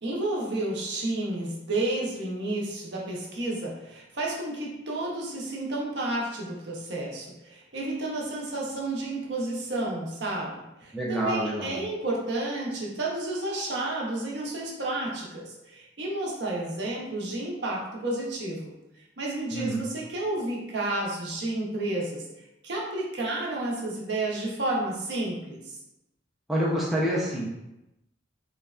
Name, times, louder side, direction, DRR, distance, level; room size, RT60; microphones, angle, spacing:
voice 1, 0.0-22.2 22.6-25.8, right 2 dB, 60° right, -3 dB, 0.6 m, -31 dB
voice 2, 10.9-11.8 19.5-19.8 26.5-27.5, right 1 dB, ahead, -7 dB, 0.3 m, -27 dB
3.2 x 2.1 x 2.3 m, 0.93 s
head